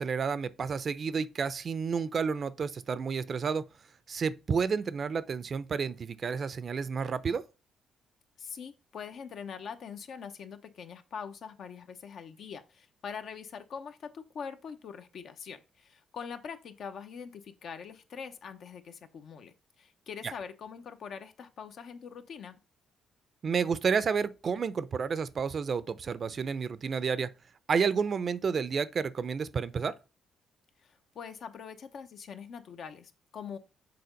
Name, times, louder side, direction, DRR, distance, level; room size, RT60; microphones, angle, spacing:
voice 1, 0.0-3.6 4.1-7.4 20.2-20.3 23.4-27.3 27.7-29.9, right 6 dB, 45° right, 0.5 m, -30 dB
voice 2, 8.4-22.6 30.8-33.6, left 6 dB, 65° left, 0.8 m, -43 dB
6.9 x 3.8 x 5.1 m
cardioid pair, 90°, 0 cm